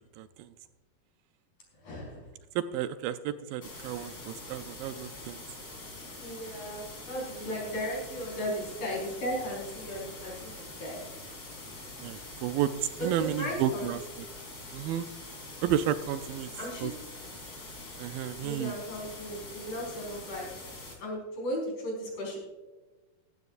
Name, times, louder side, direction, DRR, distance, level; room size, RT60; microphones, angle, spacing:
voice 1, 0.2-0.5 2.6-5.4 12.0-12.7 13.0-14.0 14.7-15.1 15.6-16.5 16.8-16.9 18.0-18.8, right 11 dB, 80° right, 10 dB, 2.2 m, -31 dB
voice 2, 1.8-2.3 6.2-11.0 13.0-14.0 16.6-16.9 18.4-20.5 21.0-22.4, equal, 65° left, -2 dB, 6.1 m, -36 dB
sound 1, 3.6-21.0, left 2 dB, 25° left, 3.5 m, -44 dB
16.0 x 14.5 x 2.5 m, 1.2 s
omnidirectional pair, 4.3 m